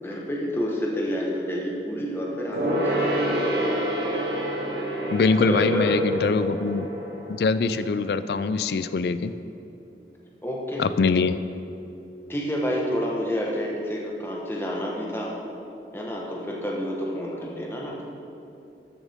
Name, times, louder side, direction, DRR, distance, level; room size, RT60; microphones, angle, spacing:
voice 1, 0.0-3.3 5.5-6.5 10.4-10.8 12.3-15.3 15.9-17.9, equal, 15° left, -3 dB, 1.2 m, -28 dB
Gong, 2.5-8.4 8.7-8.8, right 1 dB, 70° right, 1.6 m, -28 dB
voice 2, 5.1-6.9 7.3-9.3 10.8-11.4, left 4 dB, 65° left, 13 dB, 0.3 m, -23 dB
13.5 x 7.1 x 3.6 m, 2.8 s
head